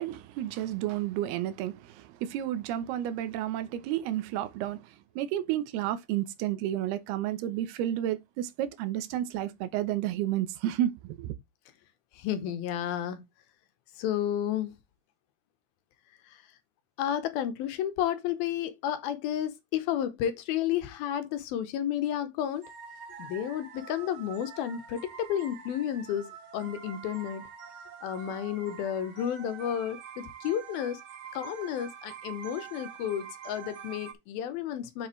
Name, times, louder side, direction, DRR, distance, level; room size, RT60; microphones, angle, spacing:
voice 1, 0.0-11.3, right 12 dB, 80° right, 2.9 m, -31 dB
voice 2, 12.1-13.2 14.0-14.8 16.3-16.4 17.0-22.7 23.2-27.4 28.0-31.0 31.3-35.1, left 10 dB, 75° left, 2.7 m, -32 dB
sound 1, 22.6-34.1, right 7 dB, 55° right, 1.5 m, -46 dB
7.6 x 7.0 x 3.2 m
omnidirectional pair, 4.5 m